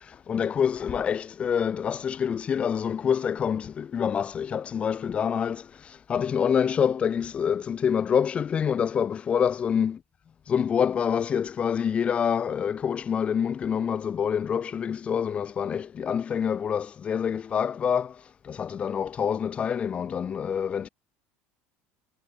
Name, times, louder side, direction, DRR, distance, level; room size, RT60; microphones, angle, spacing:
voice 1, 0.0-10.0 10.5-20.9, left 7 dB, 25° left, 1.3 m, -26 dB
cardioid pair, 165°, 5 cm